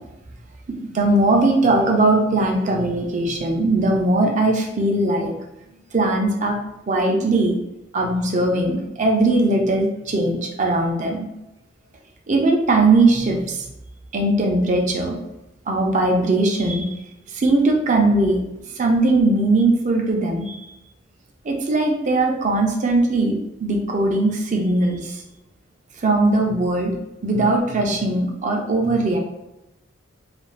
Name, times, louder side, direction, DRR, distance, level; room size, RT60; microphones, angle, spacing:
voice 1, 0.9-5.3 5.9-6.5 6.9-7.5 7.9-11.3 12.3-13.6 14.1-15.2 15.7-17.0 17.3-18.4 18.8-20.6 21.4-25.2 26.0-27.0 27.2-29.2, right 2 dB, 40° right, 1 dB, 0.5 m, -19 dB
2.4 x 2.3 x 3.1 m, 0.92 s
head